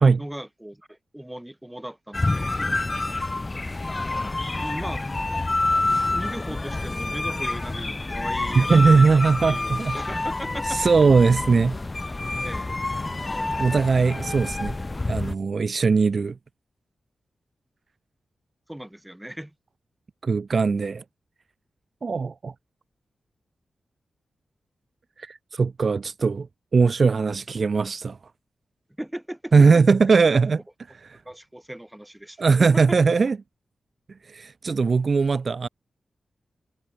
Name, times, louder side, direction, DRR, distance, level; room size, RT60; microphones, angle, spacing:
voice 1, 0.2-2.7 4.5-5.0 6.1-10.8 12.4-12.8 13.1-13.3 18.7-19.5 29.0-29.8 31.3-33.0, right 1 dB, 5° right, 2.0 m, -38 dB
sound 1, 2.1-15.3, left 2 dB, 25° left, 0.3 m, -27 dB
voice 2, 8.6-10.0 10.6-11.8 13.6-14.7 15.1-16.4 20.2-21.0 22.0-22.5 25.2-26.5 26.7-28.2 29.5-30.6 30.9-31.2 32.4-33.4 34.2-35.7, right 4 dB, 50° right, 0.5 m, -20 dB
wide cardioid pair, 95°, 0 cm